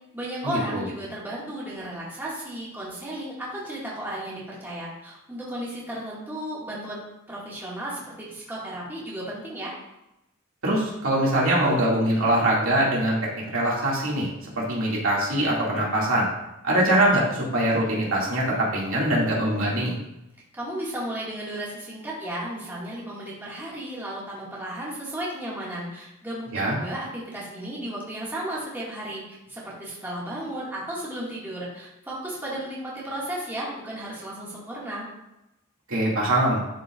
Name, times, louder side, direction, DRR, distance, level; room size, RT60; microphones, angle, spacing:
voice 1, 0.1-7.0 7.3-9.7 20.5-35.1, right 1 dB, 10° right, -7 dB, 2.0 m, -34 dB
voice 2, 10.6-14.3 14.6-16.3 16.6-20.0 26.5-26.8 35.9-36.6, right 1 dB, 75° right, -5 dB, 2.3 m, -23 dB
12.0 x 4.8 x 2.5 m, 0.91 s
head